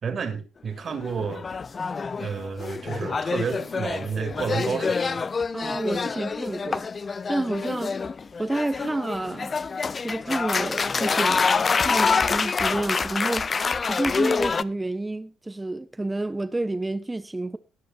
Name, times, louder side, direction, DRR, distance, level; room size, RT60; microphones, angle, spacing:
voice 1, 0.0-1.4 2.2-5.2, right 6 dB, 50° right, 3.3 m, -30 dB
sound 1, 0.9-14.6, left 5 dB, 40° left, 0.6 m, -26 dB
voice 2, 5.5-6.9 7.3-8.0 8.4-9.5 10.0-13.5 13.9-17.6, right 2 dB, 15° right, 1.1 m, -29 dB
18.5 x 6.5 x 4.3 m
supercardioid pair, 65°, 0 cm